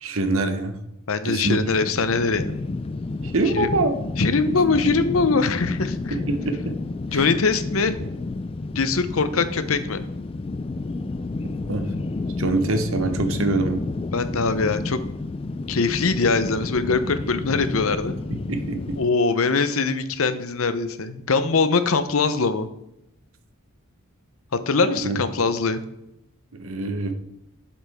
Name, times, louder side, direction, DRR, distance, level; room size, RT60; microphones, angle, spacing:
voice 1, 0.0-0.8 1.2-1.6 3.2-4.0 6.1-6.6 7.1-7.3 11.7-11.8 12.4-13.8 18.5-19.0 25.0-25.2 26.6-27.1, right 2 dB, 70° right, 7 dB, 1.1 m, -24 dB
voice 2, 1.1-2.6 3.5-3.7 4.2-6.1 7.1-7.9 8.7-10.0 14.1-15.0 15.7-18.2 19.0-22.7 24.7-25.8, left 4 dB, 70° left, 11 dB, 0.8 m, -22 dB
sound 1, 1.4-19.1, left 3 dB, 25° left, 0.3 m, -30 dB
11.5 x 7.2 x 3.6 m, 0.84 s
head